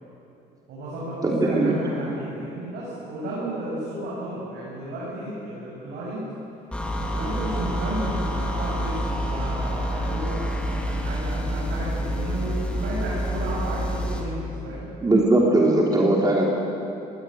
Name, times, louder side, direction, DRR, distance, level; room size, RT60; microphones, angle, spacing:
voice 1, 0.7-6.2 7.0-14.9, right 1 dB, 75° right, -7 dB, 7.6 m, -33 dB
voice 2, 1.2-1.7 15.0-16.5, right 2 dB, 20° right, -2 dB, 3.2 m, -19 dB
sound 1, 6.7-14.3, equal, 5° left, 3.0 m, -28 dB
20.0 x 17.0 x 9.2 m, 2.8 s
cardioid pair, 110°, 17 cm